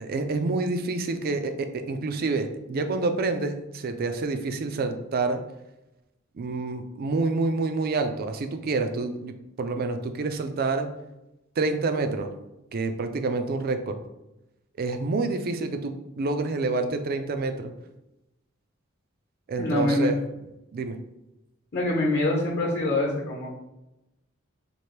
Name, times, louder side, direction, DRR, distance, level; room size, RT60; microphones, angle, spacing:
voice 1, 0.0-5.4 6.4-10.9 11.6-12.3 12.7-14.0 14.8-17.7 19.5-20.2 20.7-21.0, right 3 dB, 45° right, 7 dB, 0.4 m, -28 dB
voice 2, 19.5-20.1 21.7-23.5, left 2 dB, 50° left, -3 dB, 0.9 m, -25 dB
4.4 x 2.5 x 3.2 m, 0.93 s
head